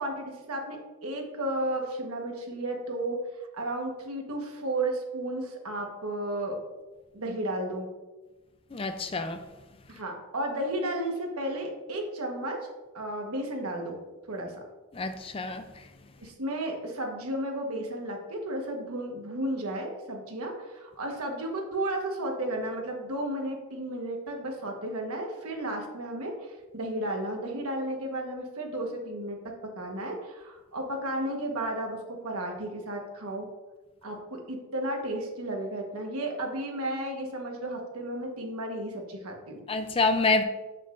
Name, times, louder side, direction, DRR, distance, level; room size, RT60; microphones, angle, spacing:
voice 1, 0.0-3.2 3.5-6.6 7.1-7.9 9.9-12.7 12.9-14.6 16.2-33.5 34.0-39.6, right 1 dB, 85° right, 1.3 m, -33 dB
voice 2, 8.7-9.4 14.9-15.7 39.7-40.4, left 3 dB, 25° left, 0.4 m, -27 dB
7.6 x 6.4 x 2.5 m
head